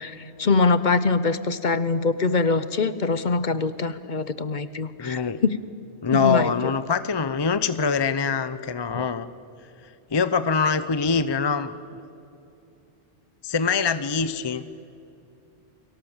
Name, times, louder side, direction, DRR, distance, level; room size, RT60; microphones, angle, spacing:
voice 1, 0.0-5.6 6.1-6.7 8.9-9.0, left 4 dB, 45° left, 14 dB, 0.9 m, -23 dB
voice 2, 5.0-5.4 6.0-9.3 10.1-11.7 13.4-14.8, left 5 dB, 30° left, 13 dB, 0.5 m, -24 dB
29.5 x 23.0 x 7.3 m, 2.8 s
omnidirectional pair, 1.2 m